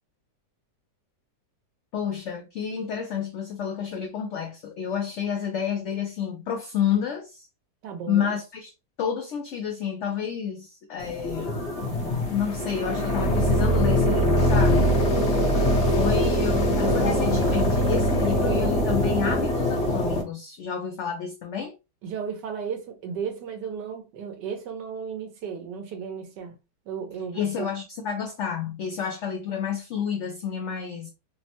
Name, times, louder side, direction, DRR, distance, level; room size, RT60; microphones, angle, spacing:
voice 1, 1.9-7.5 8.1-8.7 9.0-11.7 12.1-14.9 16.0-21.8 27.3-31.1, left 8 dB, 70° left, 0.6 m, -30 dB
voice 2, 7.8-8.3 22.0-26.5 26.9-27.7, right 6 dB, 90° right, 1.4 m, -34 dB
sound 1, 11.0-20.2, equal, 50° left, 1.0 m, -22 dB
3.4 x 2.1 x 2.7 m
omnidirectional pair, 1.8 m